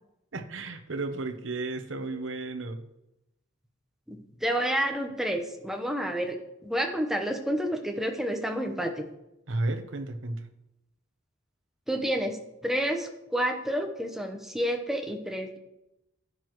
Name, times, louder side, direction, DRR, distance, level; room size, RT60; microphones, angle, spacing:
voice 1, 0.3-2.8 9.5-10.4, right 2 dB, 65° right, 7 dB, 1.0 m, -33 dB
voice 2, 4.1-6.4 6.6-9.0 11.9-12.4 12.6-15.6, equal, ahead, 3 dB, 1.0 m, -29 dB
11.0 x 9.2 x 3.1 m, 0.88 s
head